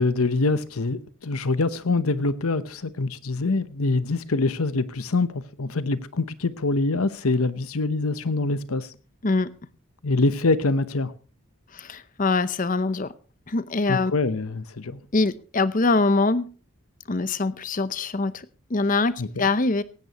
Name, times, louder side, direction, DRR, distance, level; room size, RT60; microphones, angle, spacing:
voice 1, 0.0-8.9 10.0-11.1 13.9-15.0 19.2-19.3, left 3 dB, 85° left, 1.0 m, -24 dB
voice 2, 11.7-13.1 13.5-14.1 15.1-16.4 17.1-19.8, left 3 dB, 40° left, 0.7 m, -23 dB
17.5 x 15.0 x 3.0 m
head